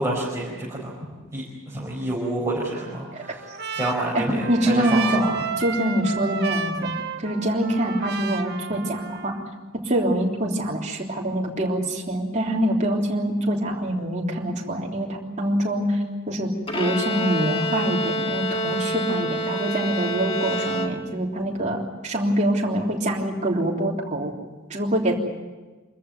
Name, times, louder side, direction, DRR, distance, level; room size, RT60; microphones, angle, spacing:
voice 1, 0.0-3.5 3.7-5.3, right 1 dB, 15° right, -6 dB, 5.0 m, -28 dB
Trumpet, 2.7-9.5, right 5 dB, 50° right, 1.4 m, -32 dB
voice 2, 4.1-5.2 5.6-6.9 7.2-9.4 9.8-24.3 24.7-25.2, right 1 dB, 35° right, -1 dB, 3.4 m, -25 dB
Bowed string instrument, 16.7-21.4, equal, 25° left, 1.7 m, -27 dB
26.5 x 14.5 x 9.4 m, 1.3 s
head